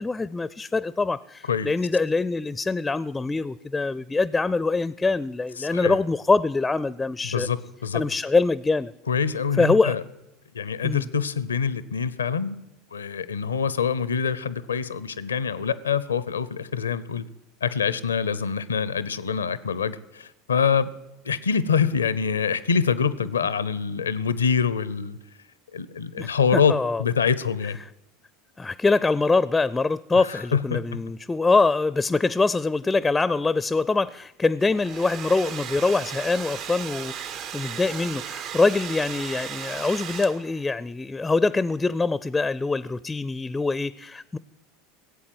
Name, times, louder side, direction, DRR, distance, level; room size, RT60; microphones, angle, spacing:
voice 1, 0.0-7.5 7.9-8.9 9.6-10.0 10.8-11.1 26.2-27.0 28.6-44.4, left 3 dB, 15° left, 19 dB, 0.4 m, -24 dB
voice 2, 5.6-6.0 7.3-8.0 9.1-10.0 10.5-12.6 12.9-17.2 17.6-20.9 21.2-25.2 25.7-27.8 30.1-31.0, left 6 dB, 90° left, 17 dB, 0.6 m, -25 dB
Domestic sounds home sounds, 34.6-40.7, right 8 dB, 50° right, 0.6 m, -36 dB
16.5 x 8.3 x 7.9 m, 0.92 s
hypercardioid pair, 85°, 0 cm